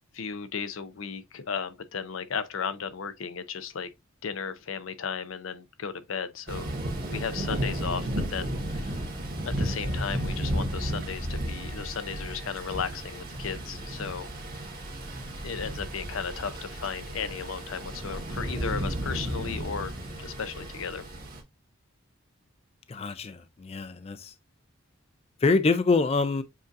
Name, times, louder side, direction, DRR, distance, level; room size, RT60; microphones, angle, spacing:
voice 1, 0.1-3.9 4.2-6.7 7.1-9.0 9.4-14.3 15.4-19.9 20.2-21.1, left 6 dB, 75° left, 0.6 m, -35 dB
Thunder / Rain, 6.5-21.4, right 1 dB, 45° right, 1.5 m, -33 dB
voice 2, 22.9-24.3 25.4-26.4, left 3 dB, 30° left, 0.4 m, -25 dB
7.4 x 2.7 x 2.5 m
head